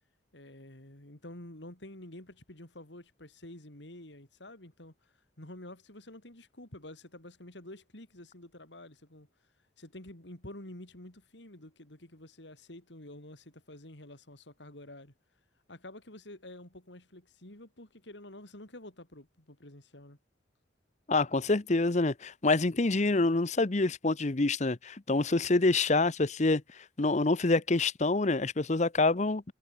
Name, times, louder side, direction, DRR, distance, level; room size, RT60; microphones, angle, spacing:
voice 1, 0.3-9.3 9.8-15.1 15.7-20.2, left 1 dB, 70° left, 3.9 m, -49 dB
voice 2, 21.1-29.4, left 3 dB, 40° left, 0.8 m, -27 dB
head